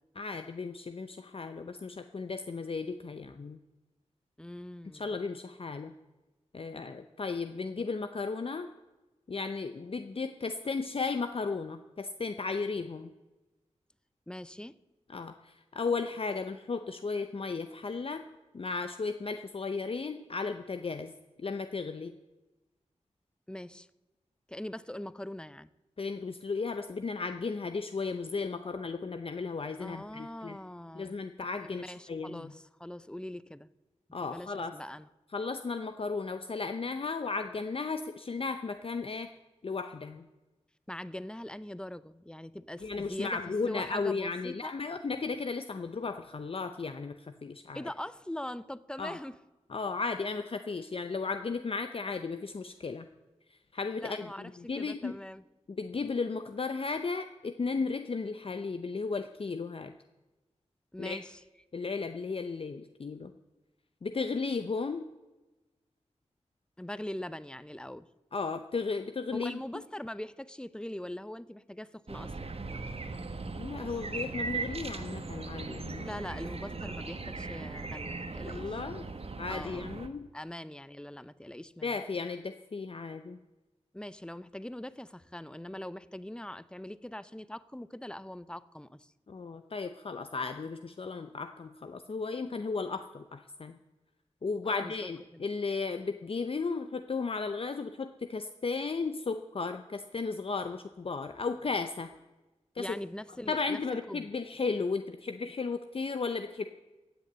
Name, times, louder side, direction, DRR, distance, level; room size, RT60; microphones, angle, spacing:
voice 1, 0.2-3.6 4.9-5.9 6.5-8.7 9.3-13.1 15.1-18.2 18.5-21.1 21.4-22.1 26.0-30.6 30.9-32.5 34.1-34.7 35.3-39.3 39.6-40.3 42.8-47.8 49.0-49.2 49.7-53.1 53.7-55.2 55.7-59.9 61.0-61.2 61.7-63.3 64.0-65.1 68.3-69.6 73.6-76.1 78.5-79.0 79.4-80.3 81.8-83.4 89.3-93.8 94.4-102.1 102.8-103.0 103.5-106.6, left 4 dB, 50° left, 8 dB, 0.6 m, -35 dB
voice 2, 4.4-5.1 14.3-14.7 23.5-23.9 24.5-25.7 29.8-31.2 31.6-33.7 34.2-35.1 40.9-43.4 43.7-44.8 47.7-49.4 54.0-55.4 60.9-61.4 66.8-68.1 69.3-72.6 76.0-78.8 79.5-79.9 80.3-82.0 83.9-89.1 94.7-95.5 102.8-104.3, left 1 dB, 5° left, 16 dB, 0.6 m, -42 dB
sound 1, 72.1-80.1, right 3 dB, 55° right, 1.2 m, -38 dB
16.0 x 6.7 x 8.6 m, 1.1 s
wide cardioid pair, 65°, 12 cm